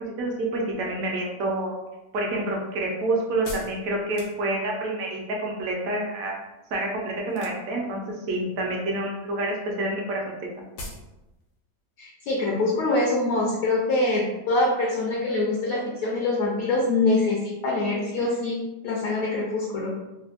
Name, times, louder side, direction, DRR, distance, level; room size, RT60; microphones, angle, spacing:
voice 1, 0.2-1.8 2.1-6.4 6.7-8.0 8.3-10.5, right 2 dB, 70° right, -1 dB, 0.9 m, -28 dB
sound 1, 1.8-4.9 7.3-7.9 8.2-8.8 9.1-9.2 9.5-9.6 9.8-9.9 10.2-10.3 10.8-11.1 11.4-11.5, left 2 dB, 85° left, 1.3 m, -40 dB
voice 2, 12.0-19.9, left 2 dB, 70° left, -3 dB, 0.9 m, -24 dB
3.3 x 2.1 x 2.4 m, 0.98 s
omnidirectional pair, 1.8 m